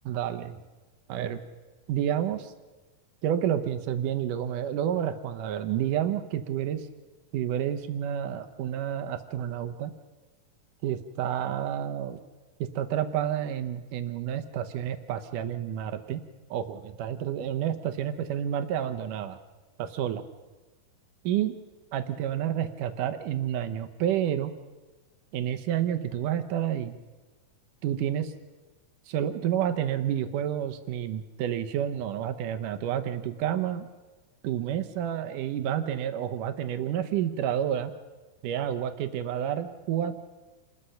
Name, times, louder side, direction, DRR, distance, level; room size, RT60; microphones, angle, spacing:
voice 1, 0.1-0.5 1.1-1.4 1.9-2.5 3.2-6.9 7.3-9.9 10.8-12.2 12.6-16.2 16.5-19.4 19.8-20.2 21.2-21.5 21.9-24.5 25.3-27.0 27.8-28.3 29.1-33.9 34.4-37.9 38.4-40.1, right 10 dB, 70° right, 8 dB, 2.1 m, -29 dB
27.5 x 20.5 x 5.7 m, 1.3 s
omnidirectional pair, 4.5 m